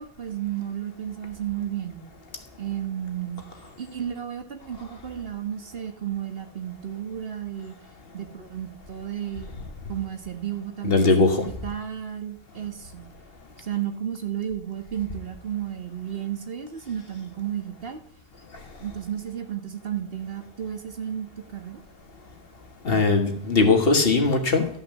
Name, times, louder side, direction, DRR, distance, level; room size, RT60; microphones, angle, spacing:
voice 1, 0.0-2.1 2.6-3.5 3.8-7.7 8.1-9.5 9.9-13.1 13.6-18.0 18.8-21.8, right 10 dB, 65° right, 6 dB, 1.6 m, -33 dB
voice 2, 10.8-11.5 22.9-24.7, left 3 dB, 65° left, 5 dB, 1.8 m, -20 dB
12.5 x 5.8 x 7.4 m, 0.66 s
omnidirectional pair, 1.0 m